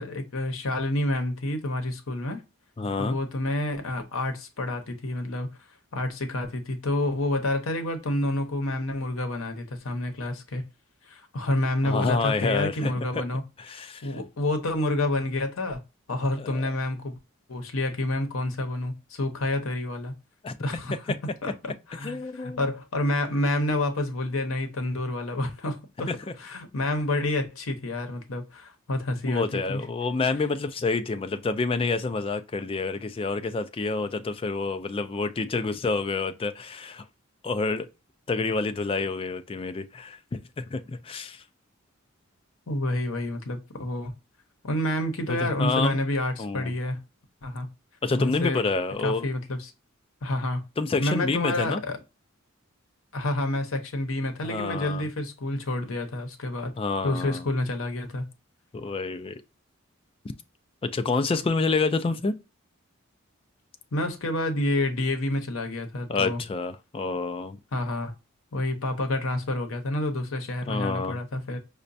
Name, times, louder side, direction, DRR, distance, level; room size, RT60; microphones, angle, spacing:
voice 1, 0.0-2.4 3.0-5.5 5.9-10.6 11.1-13.4 14.0-15.8 16.1-17.2 17.5-20.1 20.6-21.0 21.4-21.5 21.9-26.1 26.4-29.8 42.7-44.1 44.6-47.0 47.4-47.7 48.2-48.6 49.0-49.7 50.2-50.6 51.0-52.0 53.1-56.7 57.0-58.3 63.9-66.4 67.7-68.1 68.5-71.6, left 1 dB, 75° left, 0.8 m, -28 dB
voice 2, 2.8-3.2 11.8-13.2 13.6-14.2 16.4-16.7 20.4-20.5 22.0-22.7 26.1-26.2 29.2-37.0 37.4-37.9 38.3-41.4 45.3-46.0 46.4-46.7 48.0-49.3 50.8-51.8 54.4-55.1 56.8-57.5 58.7-59.4 60.8-62.3 66.1-67.6 70.7-71.2, left 3 dB, 25° left, 0.3 m, -28 dB
4.9 x 2.2 x 2.6 m
head